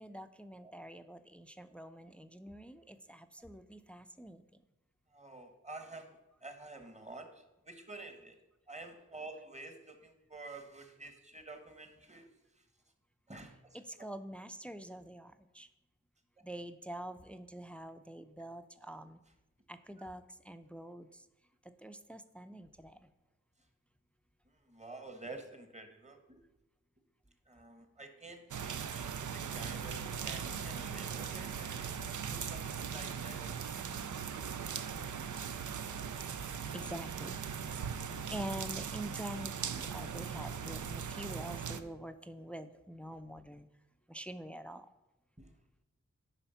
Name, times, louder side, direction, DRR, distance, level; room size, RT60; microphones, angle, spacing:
voice 1, 0.0-4.4 13.7-15.7 16.4-19.2 19.7-21.3 21.8-23.1 36.7-37.4 38.2-43.7 44.1-44.9, right 1 dB, 5° left, 10 dB, 0.5 m, -46 dB
voice 2, 5.1-8.4 8.7-12.3 12.5-12.6 13.3-14.1 18.8-18.9 20.0-20.1 24.4-26.4 27.5-31.9 32.1-33.4 45.4-45.5, right 2 dB, 25° right, 6 dB, 1.2 m, -50 dB
sound 1, 28.5-41.8, right 7 dB, 85° right, 0.5 m, -39 dB
10.0 x 3.6 x 5.6 m, 0.98 s
cardioid pair, 45°, 29 cm